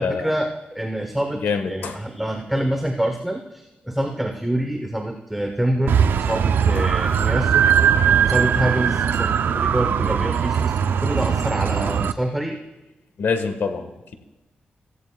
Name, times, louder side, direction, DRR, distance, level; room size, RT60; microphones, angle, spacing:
voice 1, 0.0-7.7 8.2-12.6, right 1 dB, 5° right, 3 dB, 0.8 m, -26 dB
voice 2, 1.4-2.0 6.8-6.9 13.2-14.1, left 5 dB, 80° left, 8 dB, 1.3 m, -25 dB
sound 1, 5.9-12.1, right 8 dB, 80° right, 0.4 m, -20 dB
16.5 x 15.0 x 2.3 m, 1.0 s
wide cardioid pair, 140°, 4 cm